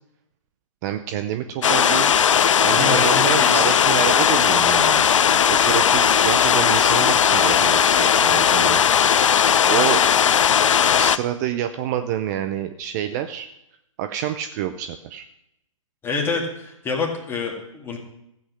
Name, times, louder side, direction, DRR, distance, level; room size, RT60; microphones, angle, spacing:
voice 1, 0.8-2.1 2.6-5.0 5.5-8.8 9.7-10.0 11.0-13.5 14.0-15.3, right 11 dB, 30° right, 9 dB, 0.5 m, -27 dB
sound 1, 1.6-11.2, left 8 dB, 65° left, 0.5 m, -17 dB
voice 2, 2.7-3.8 16.0-18.0, left 3 dB, 15° left, 0 dB, 2.2 m, -27 dB
14.0 x 8.0 x 6.3 m, 0.81 s
figure-of-eight pair, 125°, 17 cm